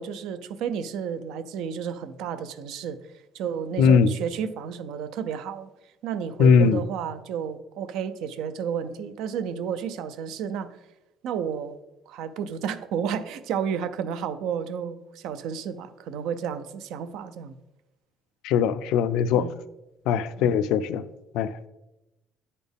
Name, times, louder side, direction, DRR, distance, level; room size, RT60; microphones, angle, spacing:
voice 1, 0.0-3.0 3.3-5.7 6.0-10.8 11.2-11.8 12.1-17.5 19.3-19.5 20.4-20.6, right 7 dB, 80° right, 0.5 m, -32 dB
voice 2, 3.8-4.1 6.4-6.8 18.4-19.5 20.1-21.0 21.3-21.7, left 6 dB, 85° left, 0.4 m, -20 dB
9.9 x 4.2 x 3.5 m
cardioid pair, 120°, 0 cm